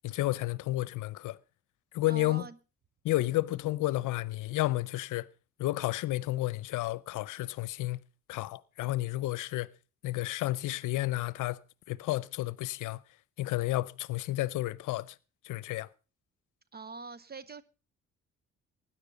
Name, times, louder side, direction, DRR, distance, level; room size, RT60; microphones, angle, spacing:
voice 1, 0.0-1.4 1.9-2.4 3.0-5.3 5.6-8.0 8.3-9.7 10.0-11.6 11.9-13.0 13.4-15.2 15.4-15.9, left 17 dB, 85° left, 0.7 m, -31 dB
voice 2, 2.1-2.6 16.7-17.6, right 4 dB, 30° right, 0.8 m, -43 dB
16.0 x 10.5 x 5.1 m
cardioid pair, 90°, 30 cm